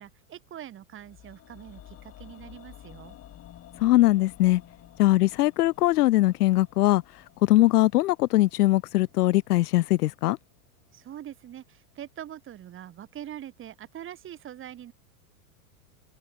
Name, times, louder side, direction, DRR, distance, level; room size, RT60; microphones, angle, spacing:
voice 1, 0.0-3.2 10.9-14.9, right 11 dB, 25° right, 2.0 m, -43 dB
sound 1, 1.0-11.1 11.4-11.5, left 12 dB, 30° left, 2.6 m, -52 dB
voice 2, 3.8-4.6 5.0-7.0 7.4-10.4, left 17 dB, 85° left, 0.6 m, -21 dB
hypercardioid pair, 120°, 45 cm